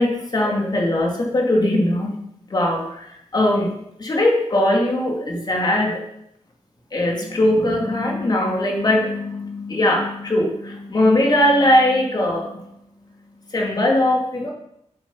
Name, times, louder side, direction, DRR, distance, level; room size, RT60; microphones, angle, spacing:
voice 1, 0.0-2.2 2.5-6.0 6.9-12.8 13.5-14.5, left 1 dB, 35° left, 0 dB, 2.3 m, -20 dB
13.5 x 8.0 x 5.6 m, 0.76 s
wide cardioid pair, 175°, 12 cm